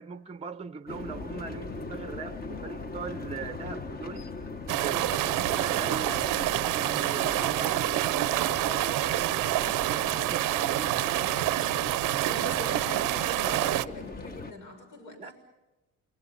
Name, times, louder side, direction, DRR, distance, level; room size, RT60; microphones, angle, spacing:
voice 1, 0.0-4.3 4.7-9.0 9.7-11.0 12.6-13.0 15.2-15.3, right 5 dB, 20° right, 0.7 m, -40 dB
sound 1, 0.9-14.5, left 3 dB, 30° left, 1.3 m, -40 dB
sound 2, 4.7-13.8, right 16 dB, 85° right, 0.7 m, -27 dB
voice 2, 12.3-15.3, left 1 dB, 70° left, 6.6 m, -41 dB
29.0 x 24.0 x 5.7 m
cardioid pair, 120°, 31 cm